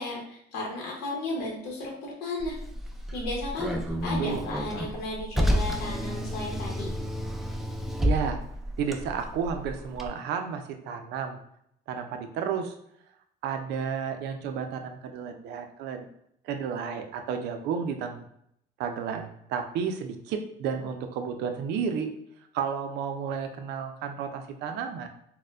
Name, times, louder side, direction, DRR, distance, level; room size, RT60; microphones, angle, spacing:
voice 1, 0.0-2.6 3.1-6.9, left 2 dB, 75° left, -2 dB, 0.9 m, -34 dB
Car, 2.4-10.1, equal, ahead, 0.3 m, -30 dB
voice 2, 3.9-4.4 8.0-8.4 8.8-11.4 11.9-12.7 13.4-16.1 16.4-18.3 18.8-22.1 22.5-25.1, right 6 dB, 80° right, 6 dB, 0.4 m, -32 dB
4.2 x 2.1 x 2.4 m, 0.73 s
cardioid pair, 110°, 17 cm